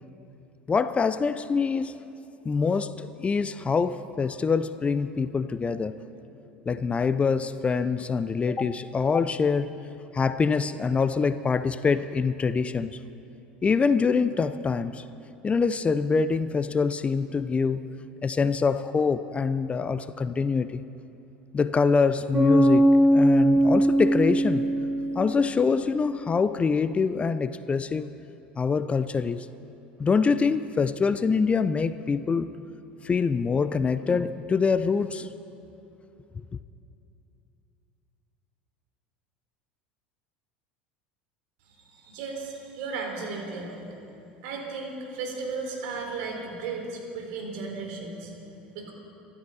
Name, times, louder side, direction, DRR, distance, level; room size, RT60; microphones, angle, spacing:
voice 1, 0.7-2.0 2.4-5.9 6.7-9.7 10.1-13.0 13.6-15.0 15.4-17.9 18.2-20.8 21.5-24.7 25.1-28.2 28.6-29.5 30.0-32.5 33.0-35.3, left 5 dB, 20° left, 0.5 m, -25 dB
Bass guitar, 22.3-26.0, right 1 dB, 10° right, 4.8 m, -21 dB
voice 2, 41.6-43.8 44.4-48.3 48.7-48.9, right 4 dB, 60° right, 3.8 m, -35 dB
24.5 x 13.0 x 4.2 m
hypercardioid pair, 75°, 5 cm